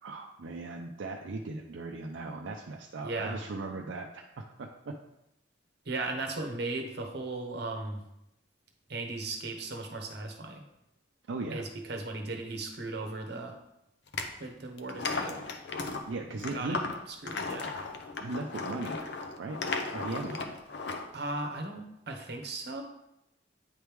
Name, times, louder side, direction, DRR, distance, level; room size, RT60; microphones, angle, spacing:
voice 1, 0.0-4.9 11.3-11.7 16.1-16.9 18.2-19.0 19.4-19.6 19.9-20.6, right 3 dB, 80° right, 1 dB, 0.5 m, -38 dB
voice 2, 3.0-3.4 5.8-8.0 8.9-10.6 11.5-13.6 14.4-15.4 16.4-17.7 21.1-22.8, right 2 dB, 60° right, 3 dB, 0.9 m, -37 dB
sound 1, 14.1-14.3 14.8-21.1, left 3 dB, 65° left, 0.5 m, -36 dB
8.9 x 3.1 x 3.4 m, 0.84 s
head